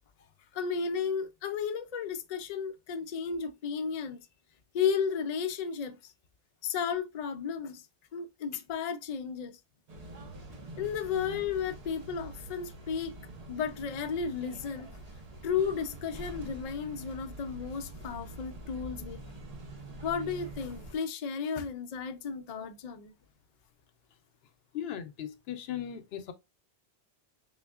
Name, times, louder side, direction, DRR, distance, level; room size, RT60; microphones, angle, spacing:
voice 1, 0.5-4.2 4.7-6.1 6.6-7.9 8.1-9.5 10.8-13.1 13.5-14.9 15.4-19.4 20.0-23.1, left 6 dB, 55° left, 0.5 m, -33 dB
sound 1, 9.9-20.9, right 2 dB, 45° right, 0.7 m, -45 dB
voice 2, 24.7-26.3, left 10 dB, 75° left, 0.8 m, -37 dB
3.7 x 3.4 x 2.3 m
omnidirectional pair, 1.1 m